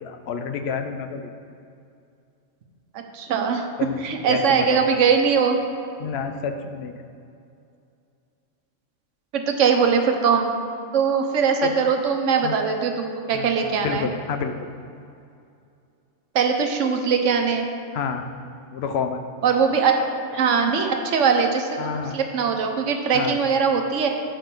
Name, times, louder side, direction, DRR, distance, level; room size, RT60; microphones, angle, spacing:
voice 1, 0.0-1.3 3.8-4.0 4.3-5.0 6.0-7.0 11.6-11.7 12.4-12.6 13.3-14.5 17.9-18.3 18.7-19.2 21.8-22.2 23.1-23.4, left 6 dB, 65° left, 7 dB, 0.7 m, -29 dB
voice 2, 3.1-3.6 4.0-5.6 9.3-10.5 10.9-14.1 16.3-17.7 19.4-19.9 20.3-21.7 22.1-24.1, right 6 dB, 75° right, 4 dB, 1.1 m, -21 dB
7.4 x 4.4 x 5.9 m, 2.5 s
omnidirectional pair, 1.3 m